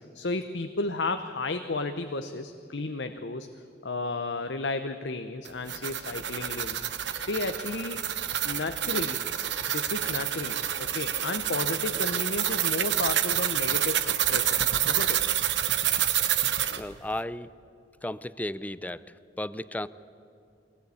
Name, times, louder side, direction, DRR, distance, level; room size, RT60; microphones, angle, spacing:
voice 1, 0.0-3.5 3.8-6.8 7.3-8.0 8.4-9.2 9.7-14.6 14.9-15.2, left 3 dB, 90° left, 8 dB, 0.9 m, -33 dB
sound 1, 5.4-16.8, right 11 dB, 85° right, 1.1 m, -28 dB
voice 2, 16.7-17.5 18.0-19.1 19.4-19.9, left 1 dB, 10° left, 16 dB, 0.5 m, -34 dB
23.0 x 18.5 x 8.5 m, 2.6 s
head